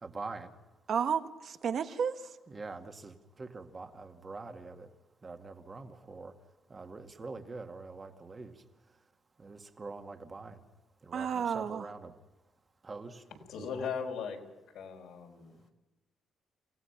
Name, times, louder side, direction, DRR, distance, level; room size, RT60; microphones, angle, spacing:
voice 1, 0.0-0.5 2.5-3.1 3.4-4.9 5.2-6.3 6.7-8.5 9.4-10.6 11.1-12.1 12.8-13.2, right 3 dB, 25° right, 5 dB, 2.1 m, -44 dB
voice 2, 0.9-2.2 11.1-11.9, right 7 dB, 55° right, 8 dB, 1.5 m, -32 dB
voice 3, 13.5-14.4 14.7-15.6, left 6 dB, 80° left, 2 dB, 5.2 m, -38 dB
29.0 x 17.5 x 5.9 m, 1.1 s
cardioid pair, 125°, 0 cm